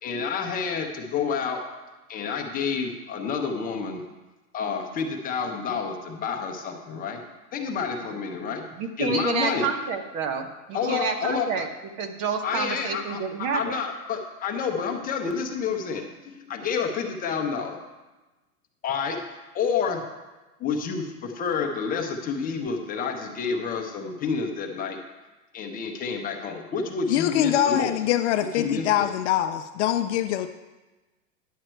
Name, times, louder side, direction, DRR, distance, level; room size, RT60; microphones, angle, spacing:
voice 1, 0.0-1.6 2.1-4.0 4.5-7.2 7.5-8.6 9.0-9.7 10.7-11.7 12.4-17.8 18.8-19.2 19.5-20.0 20.6-25.0 25.5-27.9 28.5-29.1, left 5 dB, 20° left, 3 dB, 0.8 m, -29 dB
voice 2, 8.8-11.7 12.0-13.8, right 5 dB, 35° right, 7 dB, 0.9 m, -28 dB
voice 3, 27.1-30.5, left 11 dB, 50° left, 9 dB, 0.6 m, -24 dB
10.5 x 7.4 x 4.5 m, 1.1 s
hypercardioid pair, 140°, 46 cm